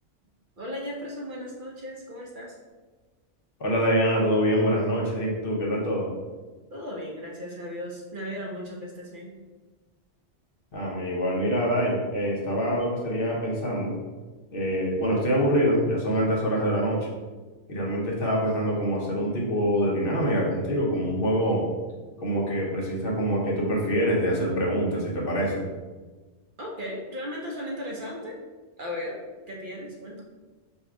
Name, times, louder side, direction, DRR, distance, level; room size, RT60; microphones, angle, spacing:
voice 1, 0.6-2.5 6.7-9.3 26.6-28.4 28.8-29.2 29.5-30.2, left 1 dB, 50° right, -2 dB, 0.8 m, -36 dB
voice 2, 3.6-6.1 10.7-13.9 14.5-17.1 17.7-21.6 22.2-25.6, equal, 55° left, -3 dB, 1.1 m, -25 dB
4.2 x 2.4 x 4.6 m, 1.3 s
omnidirectional pair, 1.2 m